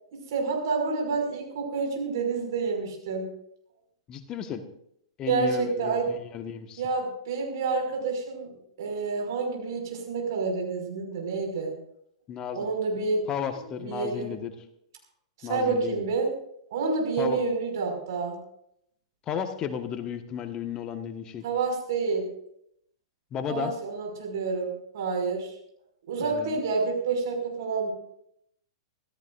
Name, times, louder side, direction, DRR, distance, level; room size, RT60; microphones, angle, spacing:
voice 1, 0.3-3.3 5.3-6.1 6.8-11.7 12.5-13.3 13.8-14.3 15.4-16.3 16.7-18.4 21.4-22.2 23.5-25.5 26.1-27.9, right 4 dB, 55° right, 2 dB, 5.6 m, -28 dB
voice 2, 4.1-4.6 5.2-6.8 12.3-12.7 13.3-14.5 15.4-16.1 17.2-17.4 19.3-21.4 23.3-23.7 26.2-26.6, left 8 dB, 30° left, 8 dB, 1.4 m, -34 dB
25.5 x 14.0 x 2.6 m, 0.73 s
figure-of-eight pair, 105°, 2 cm